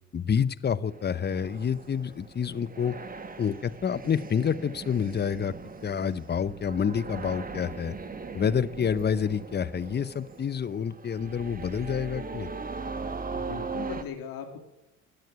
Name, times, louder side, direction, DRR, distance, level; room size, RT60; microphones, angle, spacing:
voice 1, 0.1-3.0 3.4-5.5 5.8-8.0 8.3-12.5, left 7 dB, 30° left, 17 dB, 0.7 m, -28 dB
sound 1, 0.9-14.0, right 4 dB, 25° right, 1.4 m, -40 dB
voice 2, 13.3-14.6, left 7 dB, 65° left, 4 dB, 2.3 m, -38 dB
17.5 x 6.5 x 9.6 m, 0.94 s
supercardioid pair, 80°, 37 cm